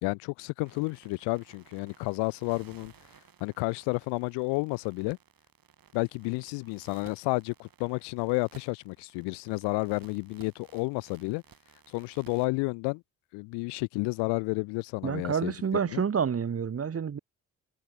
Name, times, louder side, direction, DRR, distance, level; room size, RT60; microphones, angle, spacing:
voice 1, 0.0-2.9 3.4-5.2 5.9-11.4 11.9-13.0 13.3-15.5 15.9-16.0, left 28 dB, 80° left, 1.0 m, -31 dB
sound 1, 0.6-12.5, right 8 dB, 55° right, 6.1 m, -58 dB
voice 2, 15.0-17.2, right 7 dB, 35° right, 1.1 m, -28 dB
hypercardioid pair, 45°, 41 cm